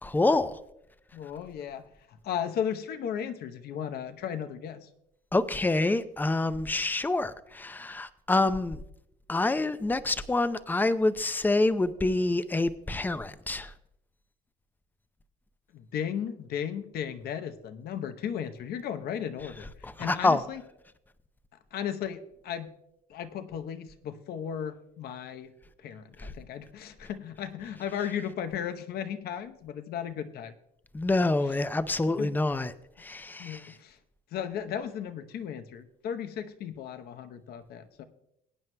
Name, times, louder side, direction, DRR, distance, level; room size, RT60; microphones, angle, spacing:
voice 1, 0.0-0.6 5.3-8.8 9.3-13.7 19.8-20.4 26.2-26.3 30.9-32.7 33.0-33.6, left 2 dB, 10° left, 0.5 m, -27 dB
voice 2, 1.1-4.9 15.7-20.6 21.7-22.7 23.1-25.5 25.8-30.5 31.4-31.6 32.1-32.3 33.4-34.0 34.3-38.0, left 8 dB, 65° left, 0.9 m, -35 dB
21.5 x 9.2 x 2.2 m
cardioid pair, 110°, 17 cm